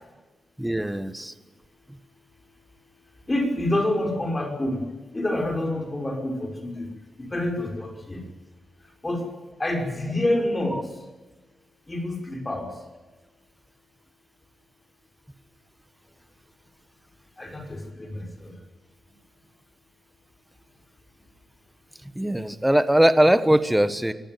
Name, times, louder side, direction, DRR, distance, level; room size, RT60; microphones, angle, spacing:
voice 1, 0.6-1.3 22.1-24.1, right 1 dB, 5° right, 11 dB, 1.4 m, -20 dB
voice 2, 3.3-4.8 5.1-6.8 7.3-8.2 9.0-9.3 9.6-10.8 11.9-12.6 17.4-18.2, left 1 dB, 25° left, 2 dB, 5.5 m, -27 dB
24.5 x 15.5 x 9.2 m, 1.2 s
cardioid pair, 80°, 0 cm